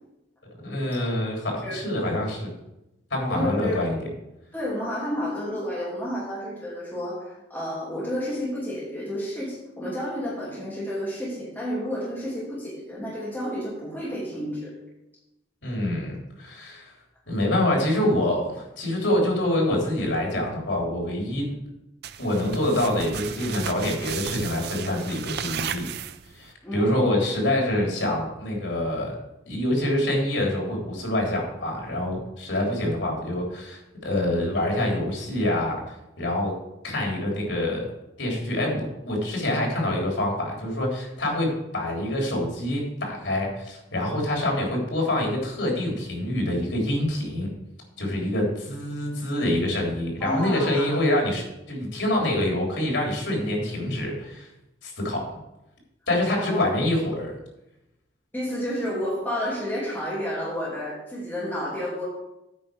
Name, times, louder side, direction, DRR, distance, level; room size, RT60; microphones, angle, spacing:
voice 1, 0.6-2.5 3.1-4.0 15.6-16.9 17.3-21.5 22.2-25.9 26.3-29.2 29.5-35.8 36.2-36.5 36.8-37.9 38.2-47.5 48.0-54.5 54.8-55.3 56.1-57.3, left 1 dB, 85° left, -1 dB, 3.5 m, -26 dB
voice 2, 3.3-3.8 4.5-14.7 26.6-26.9 50.2-51.0 56.4-56.7 58.3-62.0, equal, 10° left, -8 dB, 2.9 m, -31 dB
sound 1, 22.0-26.5, right 8 dB, 60° right, 0.5 m, -34 dB
9.0 x 5.2 x 7.7 m, 0.93 s
head